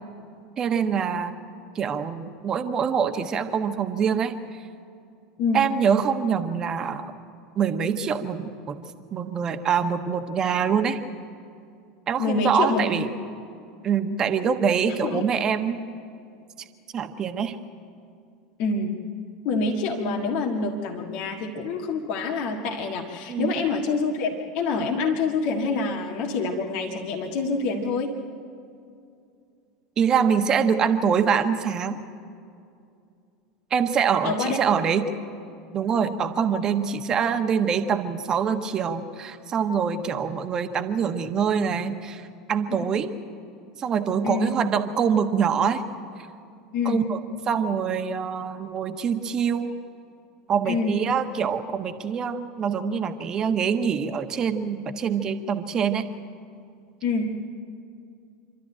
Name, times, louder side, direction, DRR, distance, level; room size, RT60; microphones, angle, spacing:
voice 1, 0.6-1.4 1.7-4.3 5.5-7.1 7.6-8.8 9.1-11.0 12.1-13.1 13.8-15.8 16.9-17.5 23.3-23.5 30.0-32.0 33.7-35.1 35.7-43.1 43.8-45.8 46.8-47.2 47.5-49.7 50.5-56.1, right 7 dB, 30° right, 8 dB, 1.3 m, -24 dB
voice 2, 12.2-12.9 15.0-15.2 18.6-19.0 19.4-28.2 34.2-34.6 42.7-42.9 44.2-44.5 46.7-47.1 50.7-51.0 57.0-57.4, left 4 dB, 50° left, 1 dB, 1.7 m, -26 dB
26.5 x 13.0 x 9.1 m, 2.5 s
figure-of-eight pair, 80°, 2 cm